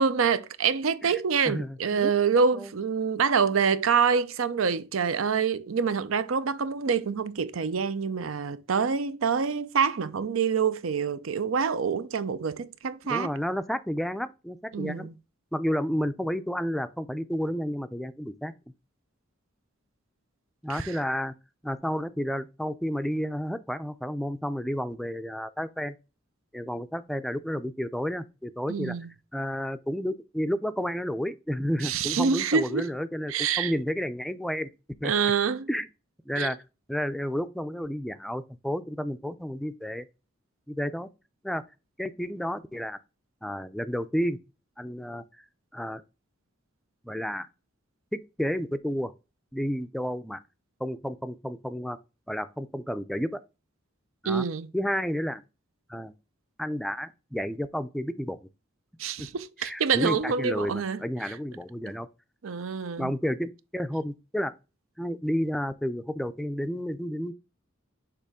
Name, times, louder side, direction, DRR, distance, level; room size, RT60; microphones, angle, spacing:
voice 1, 0.0-13.3 14.7-15.1 20.7-21.0 28.7-29.1 31.8-32.9 33.3-33.7 35.0-35.7 36.4-36.5 54.3-54.7 59.0-61.4 62.4-63.1, right 6 dB, 90° right, 0.6 m, -26 dB
voice 2, 1.5-2.1 2.5-2.7 13.1-15.1 15.5-18.5 20.6-21.3 21.6-26.0 26.5-28.9 29.3-34.7 35.0-35.1 35.7-35.9 36.3-36.6 36.9-40.1 40.7-41.1 41.4-41.6 42.0-43.0 43.4-44.4 44.8-45.2 45.7-46.0 47.0-47.5 48.1-49.1 49.5-50.4 50.8-52.0 52.3-53.4 54.2-54.5 54.7-55.4 55.9-56.1 56.6-58.4 59.2-59.3 59.6-62.1 63.0-64.5 65.0-67.3, equal, ahead, 0.3 m, -31 dB
6.7 x 3.0 x 4.8 m
head